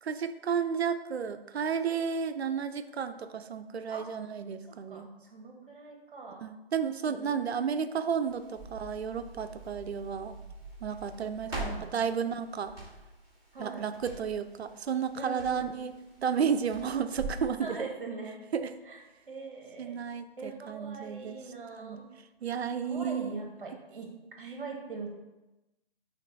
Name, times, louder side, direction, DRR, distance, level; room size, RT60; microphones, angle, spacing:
voice 1, 0.0-5.1 6.4-10.3 10.8-12.7 13.6-15.9 16.2-17.9 18.5-18.7 19.8-21.4 21.7-22.0 22.4-23.3, right 7 dB, 80° right, 11 dB, 0.5 m, -32 dB
voice 2, 4.7-6.4 7.1-7.8 11.5-11.9 12.2-12.3 13.5-13.8 15.1-15.8 17.6-18.4 18.9-19.0 19.3-20.0 20.4-22.0 22.8-24.1 24.4-25.2, right 4 dB, 55° right, 1 dB, 1.2 m, -42 dB
Crackle, 8.2-17.5, right 2 dB, 10° right, 1.4 m, -44 dB
6.4 x 3.2 x 2.6 m, 1.0 s
figure-of-eight pair, 150°, 31 cm